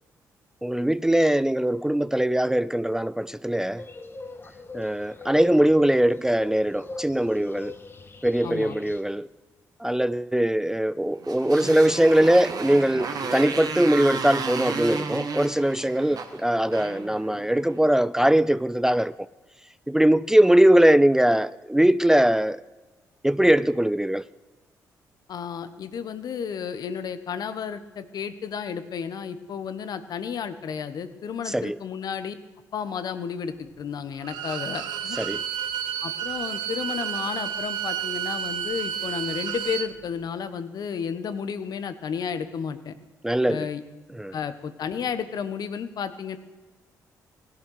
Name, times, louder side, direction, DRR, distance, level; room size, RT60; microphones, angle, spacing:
voice 1, 0.6-3.8 4.7-7.7 8.2-9.3 9.8-19.1 19.9-22.6 23.2-24.2 31.5-31.8 35.2-35.4 43.2-43.7 44.1-44.3, right 1 dB, 5° right, 0.4 m, -21 dB
forest swamp, 3.8-9.0, left 3 dB, 30° left, 1.5 m, -41 dB
voice 2, 8.4-8.8 25.3-32.3 32.7-35.2 36.0-42.9 43.5-43.8 44.3-46.4, left 7 dB, 65° left, 1.1 m, -32 dB
Motorcycle, 11.2-17.7, right 5 dB, 60° right, 1.6 m, -33 dB
Bowed string instrument, 34.2-39.9, right 9 dB, 85° right, 0.9 m, -31 dB
16.5 x 11.0 x 6.6 m
supercardioid pair, 60°, 7 cm